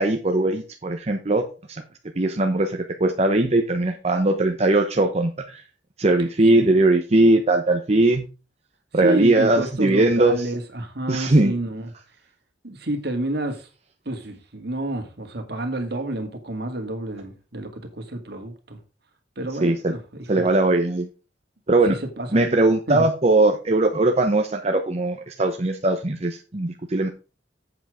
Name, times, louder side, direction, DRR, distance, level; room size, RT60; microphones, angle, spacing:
voice 1, 0.0-1.8 2.2-5.6 6.0-8.3 8.9-10.5 11.1-11.5 19.6-19.9 20.3-21.1 21.7-22.0 22.3-27.1, right 2 dB, 35° right, 4 dB, 0.9 m, -20 dB
voice 2, 9.0-11.9 12.6-13.7 14.1-18.8 19.4-20.0 20.3-20.5 21.9-22.5 22.9-23.1, right 1 dB, 65° right, 6 dB, 2.2 m, -29 dB
8.1 x 7.3 x 4.9 m, 0.33 s
head